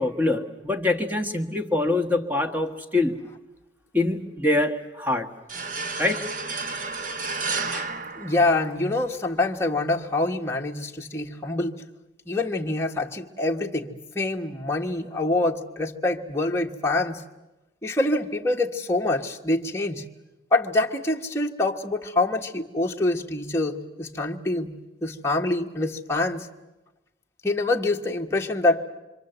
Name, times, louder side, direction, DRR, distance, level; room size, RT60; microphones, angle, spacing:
voice 1, 0.0-3.2 3.9-5.3 6.0-6.3 7.7-7.8, left 2 dB, 10° right, 5 dB, 1.6 m, -24 dB
sound 1, 5.5-9.1, right 4 dB, 45° right, 1.1 m, -32 dB
voice 2, 8.2-11.8 12.3-17.2 17.8-20.0 20.5-26.5 27.4-28.9, left 2 dB, 15° left, 0 dB, 1.4 m, -25 dB
26.5 x 25.5 x 8.0 m, 1.0 s
head